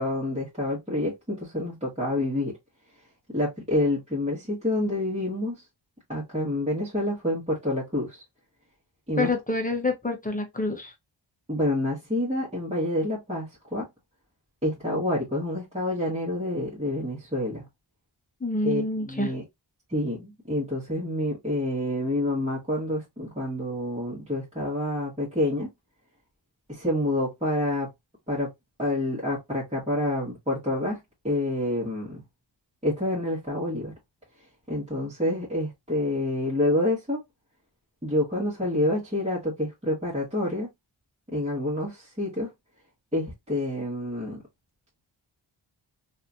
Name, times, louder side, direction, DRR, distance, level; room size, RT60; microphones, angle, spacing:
voice 1, 0.0-2.5 3.3-5.6 6.1-8.2 9.1-9.3 11.5-13.9 14.6-17.6 18.6-19.4 19.9-25.7 26.7-27.9 28.3-28.5 28.8-31.0 31.2-32.2 32.8-33.9 34.7-37.2 38.0-40.7 41.3-42.5 43.1-44.4, left 1 dB, 15° right, 1.4 m, -28 dB
voice 2, 9.2-10.9 18.4-19.3, left 2 dB, 20° left, 1.0 m, -27 dB
3.1 x 2.8 x 2.5 m
wide cardioid pair, 90°, 46 cm